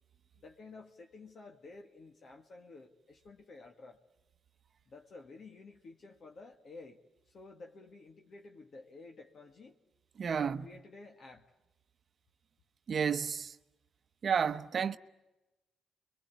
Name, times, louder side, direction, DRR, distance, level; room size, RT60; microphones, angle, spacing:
voice 1, 0.4-4.0 4.9-7.0 7.3-9.8 10.3-11.5, left 3 dB, 50° left, 2.1 m, -52 dB
voice 2, 10.2-10.7 12.9-13.6 14.2-15.0, right 7 dB, 45° right, 0.9 m, -31 dB
29.0 x 23.5 x 8.4 m
cardioid pair, 90°, 0 cm